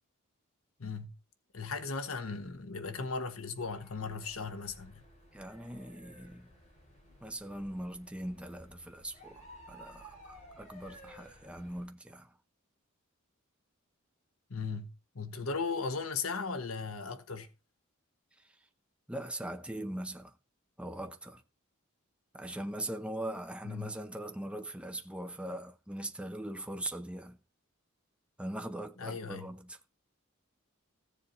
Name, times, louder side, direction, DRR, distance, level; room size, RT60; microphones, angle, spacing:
voice 1, 0.8-1.1 1.5-5.0 14.5-17.5 23.6-24.0 29.0-29.5, left 4 dB, 80° left, 1.2 m, -37 dB
sound 1, 3.6-11.9, equal, 35° left, 4.8 m, -55 dB
voice 2, 5.3-6.5 7.2-12.4 18.4-18.6 19.1-20.4 20.8-21.4 22.3-27.4 28.4-29.8, right 1 dB, 5° right, 0.8 m, -41 dB
15.0 x 7.3 x 4.0 m
head